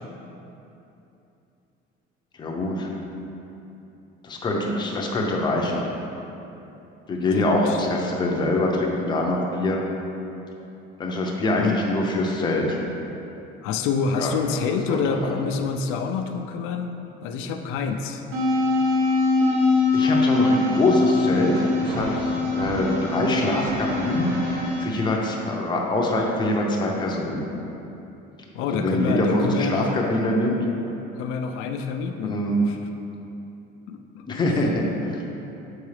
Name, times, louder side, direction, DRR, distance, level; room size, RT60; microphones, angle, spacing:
voice 1, 2.4-2.9 4.2-5.8 7.1-9.8 11.0-12.8 14.2-14.3 14.9-15.3 19.9-27.5 28.6-30.6 32.2-32.7 34.3-35.2, left 1 dB, 20° left, -1 dB, 0.6 m, -24 dB
voice 2, 7.3-7.8 11.6-11.8 13.6-17.0 17.2-18.2 28.5-29.9 31.2-32.3 32.7-32.8 33.9-34.2, left 5 dB, 80° left, 5 dB, 0.5 m, -27 dB
sound 1, 18.3-24.8, left 3 dB, 70° right, 1.2 m, -23 dB
7.1 x 4.6 x 3.2 m, 2.9 s
cardioid pair, 175°, 21 cm